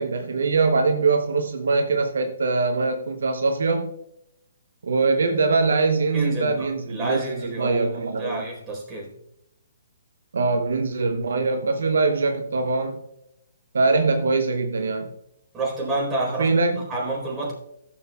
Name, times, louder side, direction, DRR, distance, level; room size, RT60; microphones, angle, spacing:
voice 1, 0.0-3.9 4.8-8.4 10.3-13.0 13.7-15.1 16.4-16.8, right 3 dB, 75° right, 5 dB, 0.9 m, -22 dB
voice 2, 6.1-9.1 15.5-16.5 16.9-17.5, right 2 dB, 15° right, -3 dB, 4.1 m, -29 dB
16.0 x 7.3 x 2.3 m, 0.80 s
hypercardioid pair, 135°, 0 cm